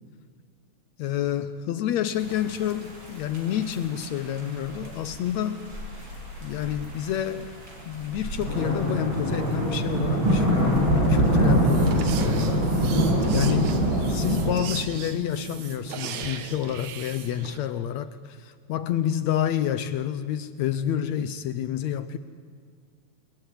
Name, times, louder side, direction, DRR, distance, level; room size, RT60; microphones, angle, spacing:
voice 1, 1.0-5.6 6.4-7.5 7.9-13.0 13.3-22.2, left 10 dB, 70° left, 1.8 m, -28 dB
sound 1, 2.2-14.5, right 1 dB, 35° right, 6.7 m, -25 dB
sound 2, 11.3-17.6, right 7 dB, 65° right, 2.6 m, -38 dB
26.5 x 22.0 x 9.9 m
omnidirectional pair, 3.8 m